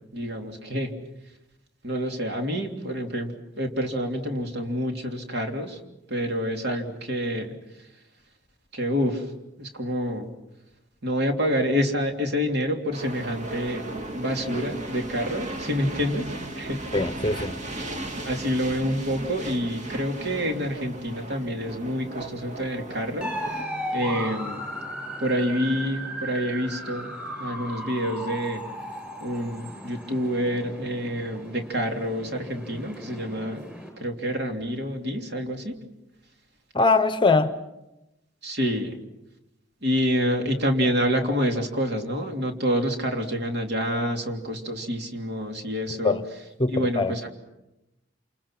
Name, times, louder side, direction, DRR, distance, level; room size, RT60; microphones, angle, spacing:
voice 1, 0.1-0.9 1.8-5.8 6.1-7.5 8.7-9.2 9.6-10.3 11.0-13.8 14.1-16.8 18.2-23.3 23.9-24.7 25.2-27.1 27.4-28.6 29.2-33.6 34.0-35.8 38.4-38.9 39.8-46.2 46.7-47.3, equal, 55° right, 3.2 m, -27 dB
sound 1, 12.9-23.6, right 2 dB, 35° right, 2.1 m, -36 dB
voice 2, 16.9-17.6 36.7-37.6 46.0-46.2 46.6-47.2, left 3 dB, 25° left, 0.9 m, -22 dB
sound 2, 23.2-33.9, equal, 10° right, 6.9 m, -36 dB
28.5 x 28.0 x 6.1 m
head